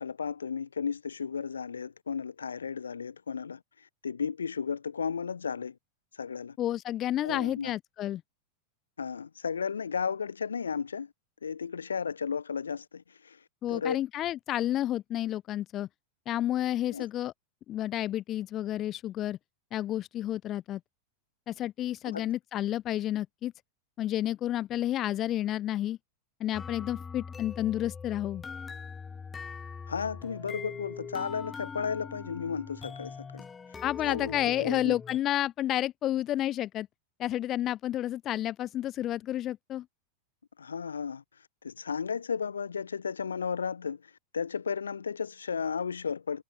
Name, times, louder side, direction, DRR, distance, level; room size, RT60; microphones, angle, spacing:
voice 1, 0.0-5.8 6.2-6.6 7.2-7.7 9.0-11.1 11.4-13.4 13.7-14.0 16.9-17.0 22.0-22.3 29.9-33.4 34.0-35.0 40.6-41.2 41.6-46.4, left 6 dB, 70° left, 1.3 m, -34 dB
voice 2, 6.6-8.2 13.6-15.9 16.3-17.3 17.7-19.4 19.7-20.8 21.5-23.5 24.0-26.0 26.4-28.4 33.8-36.9 37.2-39.8, left 12 dB, 30° left, 0.6 m, -30 dB
sound 1, 26.5-35.2, left 5 dB, 15° left, 1.8 m, -42 dB
figure-of-eight pair, 90°, 0 cm